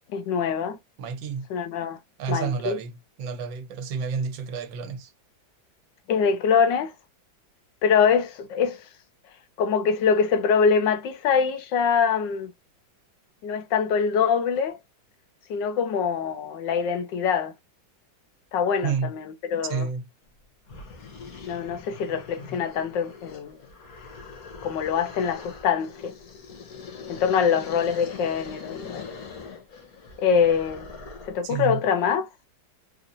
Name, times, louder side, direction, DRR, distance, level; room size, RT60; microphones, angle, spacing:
voice 1, 0.1-0.8 1.5-2.0 2.3-2.8 6.1-6.9 7.8-8.8 9.6-12.5 13.4-14.8 15.5-17.5 18.5-19.9 21.5-23.5 24.6-26.1 27.1-29.1 30.2-30.9 31.3-32.3, left 6 dB, 75° left, 1.3 m, -24 dB
voice 2, 1.0-1.5 2.2-5.1 18.8-19.1 19.7-20.0 31.4-31.8, right 6 dB, 80° right, 1.5 m, -30 dB
sound 1, 20.3-20.4 20.7-31.5, left 5 dB, 55° left, 1.2 m, -42 dB
4.2 x 2.5 x 2.6 m
omnidirectional pair, 2.1 m